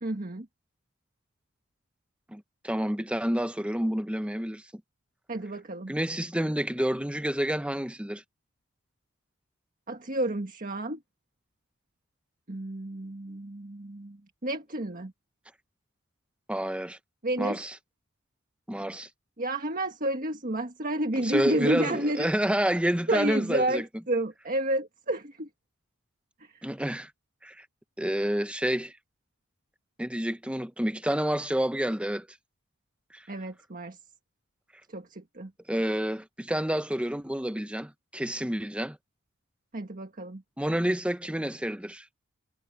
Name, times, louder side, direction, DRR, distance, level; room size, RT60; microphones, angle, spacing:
voice 1, 0.0-0.5 5.3-5.9 9.9-11.0 12.5-15.1 17.2-17.6 19.4-22.3 23.1-25.5 26.4-26.6 33.3-34.0 34.9-35.5 39.7-40.4, right 1 dB, 40° right, 1.6 m, -31 dB
voice 2, 2.3-4.6 5.9-8.2 16.5-17.0 17.4-17.7 18.7-19.1 21.2-23.8 26.6-27.1 27.4-27.7 28.0-28.9 30.0-32.3 33.1-33.2 35.7-39.0 40.6-42.0, equal, 5° right, 0.9 m, -29 dB
head